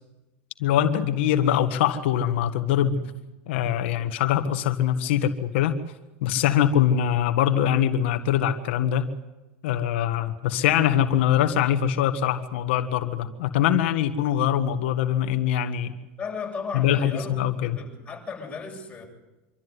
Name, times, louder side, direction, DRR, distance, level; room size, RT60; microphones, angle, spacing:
voice 1, 0.6-3.0 3.5-5.8 6.2-9.1 9.6-15.9 16.7-17.8, left 10 dB, 80° left, 8 dB, 1.6 m, -23 dB
voice 2, 16.2-19.1, left 5 dB, 15° left, 0 dB, 7.8 m, -36 dB
25.5 x 13.5 x 9.6 m, 1.0 s
supercardioid pair, 125°, 6 cm